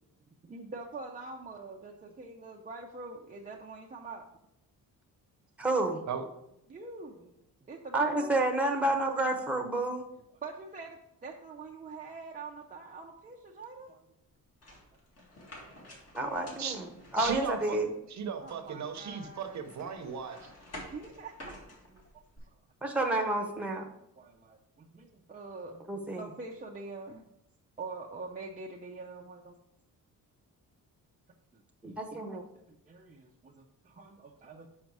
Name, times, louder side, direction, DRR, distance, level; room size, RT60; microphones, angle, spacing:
voice 1, 0.3-4.2 6.7-7.3 7.6-8.5 10.4-14.1 15.5-16.0 18.4-19.6 20.5-22.0 22.4-22.6 24.2-27.2 27.8-29.6 31.5-32.1 32.7-34.7, right 3 dB, 25° right, -1 dB, 0.5 m, -45 dB
voice 2, 5.6-6.0 7.9-10.0 16.1-17.9 22.8-23.9 25.9-26.3 31.8-32.4, right 2 dB, 5° right, 2 dB, 0.9 m, -30 dB
sound 1, 14.6-18.0 18.5-22.4, left 1 dB, 45° left, 1.9 m, -50 dB
voice 3, 17.2-17.8 18.1-20.5, right 6 dB, 55° right, 7 dB, 0.8 m, -36 dB
5.6 x 5.3 x 4.6 m, 0.80 s
cardioid pair, 150°, 35 cm